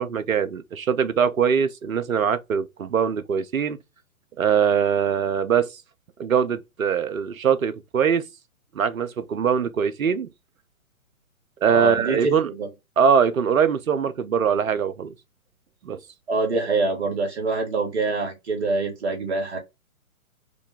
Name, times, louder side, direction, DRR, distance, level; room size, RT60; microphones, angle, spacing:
voice 1, 0.0-3.8 4.4-5.7 6.2-8.2 8.7-10.3 11.6-12.5 13.0-15.1 15.8-16.0, right 7 dB, 70° right, 0.7 m, -22 dB
voice 2, 11.6-12.7 16.3-19.6, right 3 dB, 50° right, 1.7 m, -25 dB
5.0 x 2.3 x 3.4 m
figure-of-eight pair, 130°, 43 cm